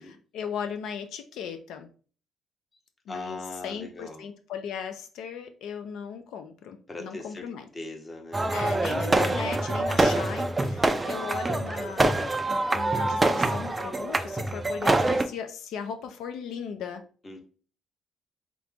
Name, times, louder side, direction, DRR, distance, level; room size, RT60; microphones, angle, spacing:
voice 1, 0.0-1.9 3.1-7.7 8.5-17.0, left 7 dB, 75° left, 7 dB, 0.6 m, -37 dB
voice 2, 3.1-4.2 6.9-7.4 7.7-8.8 17.2-17.4, left 2 dB, 20° left, 3 dB, 0.7 m, -40 dB
sound 1, 8.3-15.2, right 2 dB, 15° right, 0.3 m, -25 dB
3.8 x 3.1 x 3.5 m, 0.39 s
cardioid pair, 180°, 0 cm